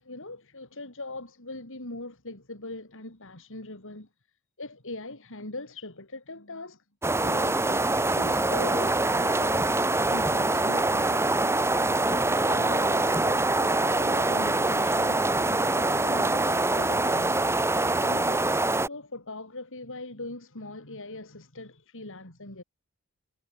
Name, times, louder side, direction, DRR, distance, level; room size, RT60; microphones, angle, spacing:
voice 1, 0.0-4.1 4.6-6.8 7.2-9.8 10.1-11.6 12.0-17.5 18.0-22.6, left 2 dB, 60° left, 5.6 m, -41 dB
sound 1, 7.0-18.9, right 2 dB, 10° right, 1.0 m, -24 dB
head